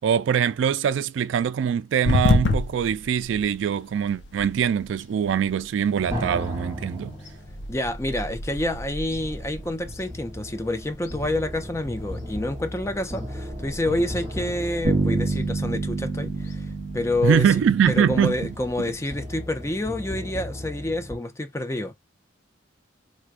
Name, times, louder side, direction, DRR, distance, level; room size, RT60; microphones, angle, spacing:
voice 1, 0.0-7.1 17.2-18.4, right 8 dB, 75° right, 0.3 m, -23 dB
sound 1, 2.0-19.9, left 2 dB, 60° left, 0.6 m, -33 dB
sound 2, 6.0-21.2, equal, 15° right, 1.0 m, -37 dB
voice 2, 7.7-17.5 17.9-21.9, left 1 dB, 15° left, 0.5 m, -28 dB
sound 3, 14.8-18.6, right 3 dB, 45° right, 0.7 m, -28 dB
4.6 x 2.2 x 2.5 m
head